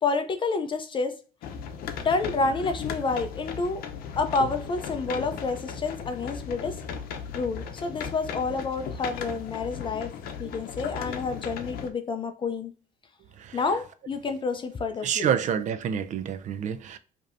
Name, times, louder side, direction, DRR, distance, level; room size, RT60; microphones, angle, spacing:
voice 1, 0.0-1.1 2.0-3.8 4.2-6.8 7.3-10.1 10.4-12.7 13.5-15.3, left 4 dB, 30° left, 0.5 m, -29 dB
sound 1, 1.4-11.9, left 7 dB, 70° left, 0.7 m, -36 dB
voice 2, 15.0-17.0, right 8 dB, 50° right, 0.4 m, -28 dB
5.1 x 2.8 x 2.5 m
cardioid pair, 115°, 16 cm